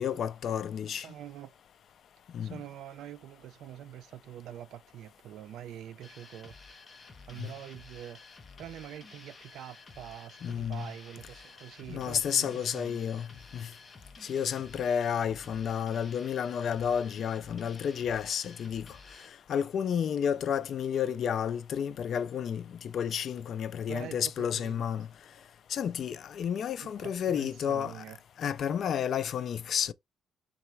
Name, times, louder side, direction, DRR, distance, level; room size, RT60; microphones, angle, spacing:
voice 1, 0.0-1.1 2.3-2.6 7.4-7.5 10.4-10.9 11.9-13.3 13.5-13.7 14.2-18.9 19.5-25.1 25.7-28.0 28.4-29.9, left 8 dB, 50° left, 0.3 m, -31 dB
voice 2, 1.0-1.5 2.4-6.7 7.0-8.2 8.6-13.0 23.9-24.8 26.8-28.2, right 11 dB, 75° right, 0.4 m, -45 dB
sound 1, 6.0-19.3, left 3 dB, 25° left, 0.7 m, -52 dB
3.9 x 2.4 x 4.4 m
cardioid pair, 160°, 0 cm